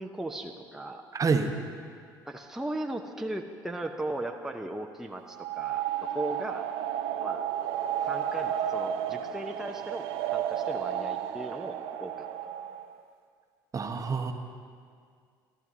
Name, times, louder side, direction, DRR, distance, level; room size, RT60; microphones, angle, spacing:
voice 1, 0.0-1.0 2.2-6.7 7.2-7.4 8.0-12.3, right 1 dB, 5° right, 2 dB, 0.8 m, -37 dB
voice 2, 1.1-1.5 13.7-14.3, right 4 dB, 30° right, 6 dB, 1.1 m, -27 dB
sound 1, 5.3-13.0, right 10 dB, 65° right, 0.7 m, -32 dB
26.5 x 12.0 x 2.8 m, 2.1 s
hypercardioid pair, 55°, 11 cm